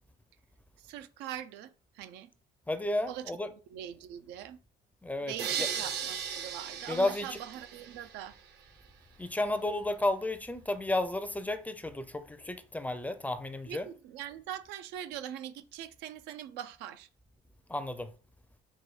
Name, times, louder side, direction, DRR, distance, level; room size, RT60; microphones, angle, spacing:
voice 1, 0.8-2.3 3.1-3.3 3.7-4.6 5.2-8.3 13.7-17.1, right 11 dB, 90° right, 0.4 m, -42 dB
voice 2, 2.7-3.5 5.0-5.7 6.9-7.3 9.2-13.9 17.7-18.1, left 2 dB, 10° left, 0.4 m, -32 dB
sound 1, 5.4-8.4, right 7 dB, 75° right, 0.8 m, -37 dB
4.6 x 2.2 x 4.8 m
cardioid pair, 110°, 17 cm